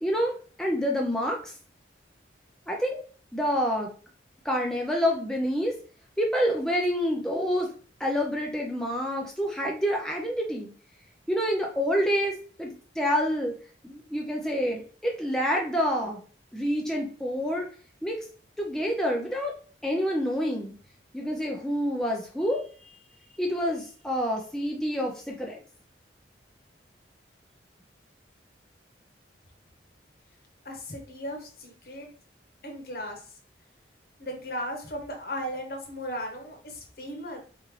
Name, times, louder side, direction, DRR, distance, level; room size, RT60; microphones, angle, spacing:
voice 1, 0.0-1.5 2.7-3.0 3.3-3.9 4.4-5.8 6.2-7.7 8.0-10.7 11.3-13.5 13.8-16.2 16.5-17.7 18.0-18.2 18.6-19.5 19.8-20.7 21.1-22.6 23.4-25.6, equal, 5° left, -1 dB, 0.5 m, -27 dB
voice 2, 30.6-32.1 32.6-33.2 34.2-37.4, equal, 55° left, 3 dB, 1.1 m, -36 dB
4.3 x 3.7 x 3.1 m, 0.42 s
head